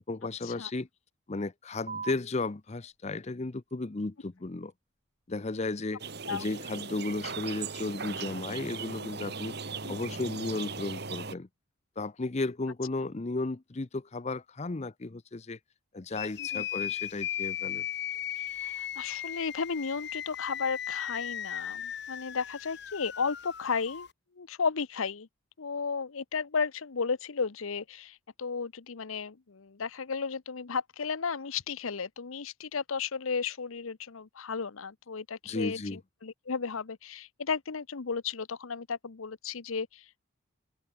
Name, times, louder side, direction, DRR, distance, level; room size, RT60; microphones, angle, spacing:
voice 1, 0.1-0.9 1.3-4.7 5.3-6.0 6.3-9.6 9.9-11.5 12.0-15.6 15.9-17.9 35.5-36.0, left 2 dB, 30° left, 0.6 m, -34 dB
sound 1, 1.9-8.9, right 5 dB, 35° right, 3.3 m, -50 dB
sound 2, 6.0-11.3, right 5 dB, 50° right, 2.3 m, -38 dB
sound 3, 16.1-24.1, left 10 dB, 55° left, 1.7 m, -37 dB
voice 2, 18.4-24.1 24.4-25.3 25.6-40.2, left 5 dB, 80° left, 0.8 m, -34 dB
head